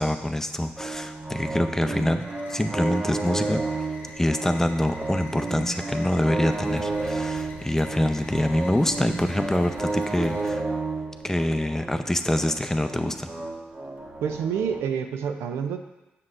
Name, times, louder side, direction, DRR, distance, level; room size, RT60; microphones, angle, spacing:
voice 1, 0.0-3.8 4.2-10.6 11.2-13.3, left 1 dB, 10° left, 7 dB, 0.6 m, -25 dB
sound 1, 0.8-14.8, right 3 dB, 40° right, 1.1 m, -32 dB
sound 2, 2.2-10.5, left 2 dB, 60° left, 1.0 m, -44 dB
voice 2, 14.2-15.8, right 7 dB, 80° right, 6 dB, 0.4 m, -28 dB
7.4 x 6.5 x 2.5 m, 1.1 s
supercardioid pair, 50°, 4 cm